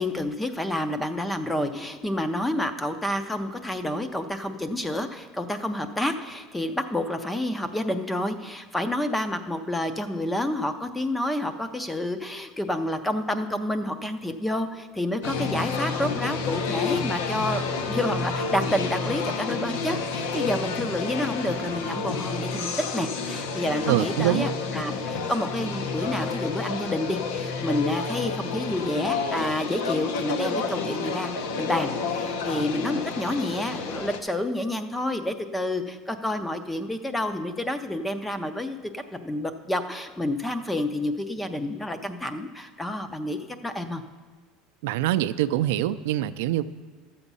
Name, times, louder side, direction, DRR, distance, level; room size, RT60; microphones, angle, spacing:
voice 1, 0.0-44.0, left 1 dB, 5° left, 10 dB, 0.4 m, -29 dB
sound 1, 15.2-34.2, left 4 dB, 75° left, 0.9 m, -30 dB
voice 2, 23.9-24.5 44.8-46.6, right 13 dB, 75° right, 13 dB, 0.4 m, -24 dB
13.0 x 7.1 x 5.4 m, 1.4 s
cardioid pair, 180°, 0 cm